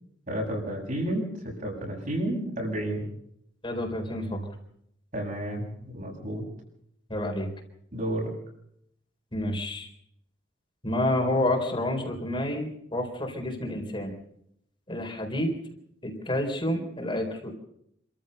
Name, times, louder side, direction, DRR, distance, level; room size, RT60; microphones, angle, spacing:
voice 1, 0.3-3.1 5.1-6.4 7.9-8.3, right 1 dB, 45° right, 0 dB, 7.9 m, -31 dB
voice 2, 3.6-4.5 7.1-7.5 9.3-9.9 10.8-14.1 14.9-15.5 16.0-17.5, left 1 dB, 30° left, 2 dB, 4.2 m, -29 dB
27.5 x 14.0 x 6.7 m, 0.73 s
head